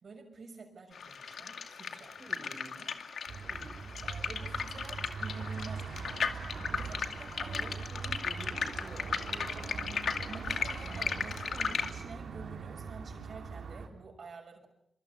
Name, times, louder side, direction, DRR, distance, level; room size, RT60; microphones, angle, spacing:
voice 1, 0.0-2.9 4.0-6.4 6.7-7.8 10.3-14.7, right 4 dB, 60° right, 4 dB, 6.3 m, -49 dB
sound 1, 0.9-11.9, left 6 dB, 75° left, 2.3 m, -36 dB
voice 2, 2.2-2.9 3.4-3.8 7.4-10.6 10.9-11.1, right 1 dB, 25° right, 3 dB, 5.2 m, -50 dB
sound 2, 3.3-13.9, right 5 dB, 80° right, 4.2 m, -42 dB
26.0 x 24.0 x 7.1 m, 0.72 s
cardioid pair, 80°, 0 cm